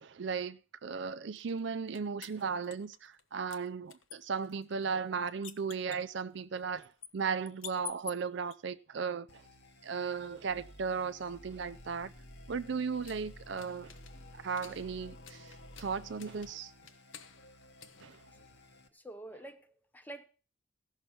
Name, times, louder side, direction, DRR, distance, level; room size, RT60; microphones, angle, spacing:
voice 1, 0.0-9.4 9.8-12.1 12.5-13.9 14.3-15.5 15.8-16.7 18.0-18.2, right 5 dB, 60° right, 0.5 m, -36 dB
sound 1, 1.4-3.2 3.5-8.6 11.3-18.8, left 9 dB, 80° left, 1.0 m, -52 dB
sound 2, 9.3-18.9, left 1 dB, 55° left, 1.3 m, -54 dB
voice 2, 18.9-20.2, right 1 dB, 10° left, 0.8 m, -47 dB
16.0 x 6.5 x 5.8 m
head